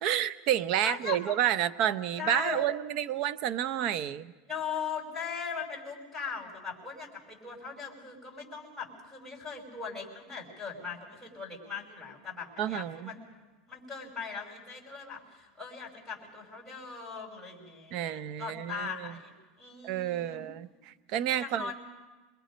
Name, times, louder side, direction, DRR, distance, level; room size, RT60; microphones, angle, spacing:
voice 1, 0.0-4.3 12.6-13.1 17.9-19.1 19.8-21.7, right 11 dB, 50° right, 15 dB, 0.7 m, -30 dB
voice 2, 0.8-1.3 2.2-2.6 4.5-13.2 13.7-20.4 21.4-21.7, left 6 dB, 10° right, 1 dB, 5.5 m, -39 dB
27.5 x 22.0 x 5.2 m, 1.2 s
supercardioid pair, 140°, 0 cm